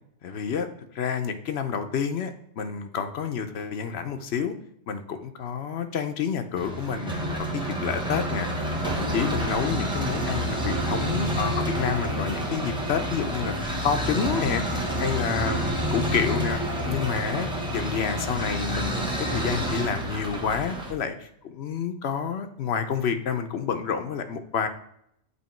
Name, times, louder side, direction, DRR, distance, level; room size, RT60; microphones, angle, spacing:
voice 1, 0.2-0.7 0.9-4.5 4.9-16.6 16.8-24.7, left 6 dB, 70° left, 8 dB, 0.9 m, -29 dB
sound 1, 6.6-20.9, equal, 5° right, 1.0 m, -28 dB
8.2 x 2.8 x 4.4 m, 0.73 s
omnidirectional pair, 1.2 m